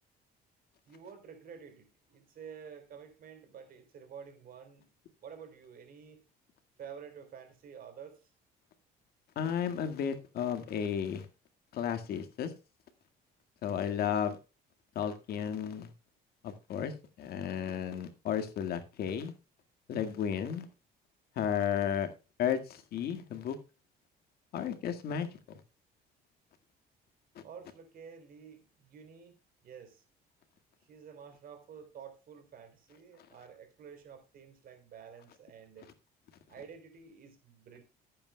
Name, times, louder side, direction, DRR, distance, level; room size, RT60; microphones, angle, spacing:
voice 1, 0.9-4.9 5.2-6.2 6.8-8.3 27.4-29.4 29.6-30.0 30.8-35.9 36.5-37.8, right 7 dB, 60° right, 3.7 m, -50 dB
voice 2, 9.4-11.3 11.7-12.5 13.6-14.4 15.0-15.9 16.4-16.9 17.2-19.3 19.9-20.7 21.4-22.1 22.4-23.6 24.5-25.3, left 8 dB, 65° left, 1.9 m, -33 dB
17.0 x 8.8 x 2.3 m
cardioid pair, 110°, 17 cm